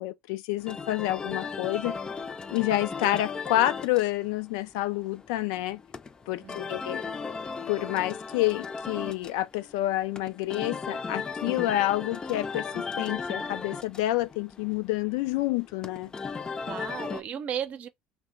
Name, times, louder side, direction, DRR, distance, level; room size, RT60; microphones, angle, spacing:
voice 1, 0.0-2.0 2.5-5.8 6.3-7.0 7.7-16.1, left 15 dB, 80° left, 0.4 m, -28 dB
sound 1, 0.6-17.2, left 5 dB, 25° left, 0.5 m, -36 dB
voice 2, 6.4-6.9 16.7-17.9, right 9 dB, 55° right, 0.6 m, -35 dB
2.9 x 2.1 x 3.6 m
supercardioid pair, 80°, 3 cm